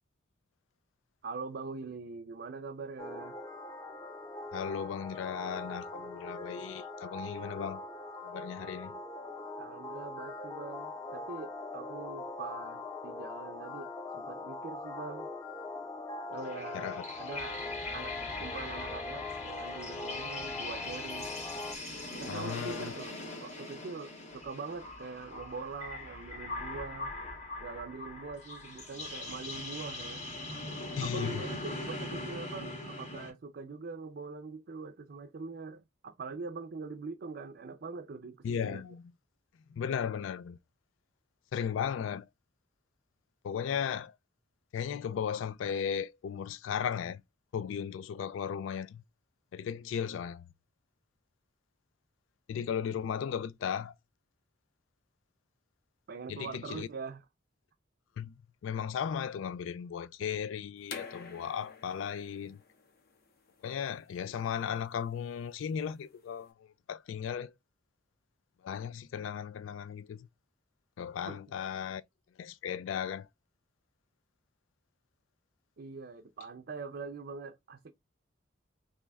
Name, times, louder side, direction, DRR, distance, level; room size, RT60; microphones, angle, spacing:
voice 1, 1.2-3.4 9.6-15.3 16.3-17.6 17.9-21.3 22.2-27.1 27.6-30.3 31.0-38.8 56.1-57.3 71.3-71.4 75.8-77.9, right 4 dB, 55° right, 0.5 m, -43 dB
sound 1, 3.0-21.8, left 2 dB, 20° left, 0.6 m, -42 dB
voice 2, 4.5-7.9 8.2-9.0 16.7-17.0 22.3-22.9 31.0-31.4 38.4-39.0 39.7-40.6 41.5-42.3 43.4-44.1 44.7-47.2 47.5-49.0 49.5-50.4 52.5-53.9 56.3-56.9 58.2-58.3 58.6-62.6 63.6-67.5 68.6-70.3 71.0-72.0 72.4-73.3, left 8 dB, 85° left, 0.3 m, -36 dB
sound 2, 16.4-33.3, left 2 dB, 35° left, 1.3 m, -41 dB
sound 3, 60.8-66.4, left 5 dB, 55° left, 1.0 m, -50 dB
3.3 x 3.1 x 3.4 m
head